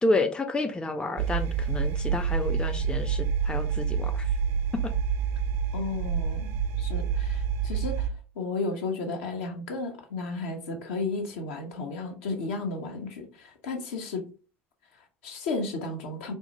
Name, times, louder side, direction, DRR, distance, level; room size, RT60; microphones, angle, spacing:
voice 1, 0.0-4.3 4.8-4.9, left 2 dB, 10° left, 0.4 m, -29 dB
sound 1, 1.2-8.1, right 7 dB, 60° right, 0.4 m, -28 dB
voice 2, 5.7-14.2 14.9-16.3, left 3 dB, 65° left, 0.8 m, -34 dB
4.4 x 2.1 x 2.9 m
figure-of-eight pair, 60°, 7 cm